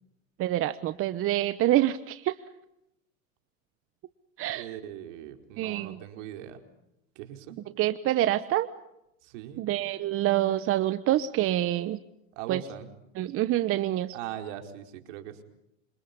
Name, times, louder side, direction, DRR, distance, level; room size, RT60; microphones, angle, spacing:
voice 1, 0.4-2.4 4.4-4.7 5.6-6.0 7.8-8.7 9.6-12.0 12.5-12.6 13.2-14.2, right 14 dB, 30° right, 13 dB, 1.1 m, -26 dB
voice 2, 4.5-6.6 7.1-7.6 9.2-9.7 12.4-12.9 14.1-15.4, right 11 dB, 60° right, 6 dB, 4.7 m, -40 dB
29.5 x 27.0 x 5.4 m, 0.83 s
hypercardioid pair, 120°, 41 cm